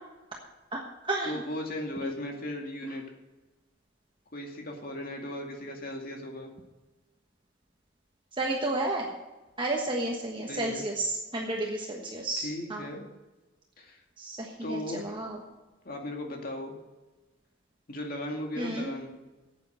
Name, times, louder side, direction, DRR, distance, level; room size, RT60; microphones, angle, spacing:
voice 1, 0.7-1.4 2.0-2.1 2.8-2.9 8.4-9.1 9.6-12.9 14.2-15.4 18.6-18.9, right 2 dB, 25° right, -1 dB, 1.3 m, -32 dB
voice 2, 1.3-3.0 4.3-6.5 10.5-10.9 12.4-13.0 13.8-14.0 14.6-15.2 15.8-16.8 17.9-19.2, left 1 dB, 50° left, 2 dB, 2.2 m, -37 dB
9.3 x 8.5 x 7.8 m, 1.1 s
head